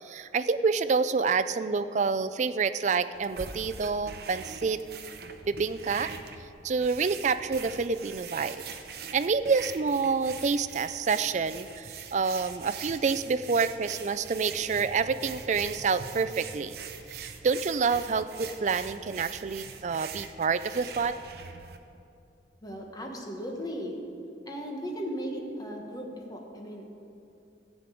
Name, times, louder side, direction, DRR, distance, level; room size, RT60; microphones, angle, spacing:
voice 1, 0.0-4.8 5.5-6.1 6.6-8.6 9.1-16.8 17.1-21.2, right 5 dB, 40° right, 13 dB, 0.4 m, -28 dB
sound 1, 3.1-21.8, right 6 dB, 60° right, 0.7 m, -43 dB
voice 2, 22.6-24.0 24.4-26.9, equal, 20° left, 1 dB, 1.3 m, -37 dB
14.0 x 5.2 x 8.4 m, 2.7 s
head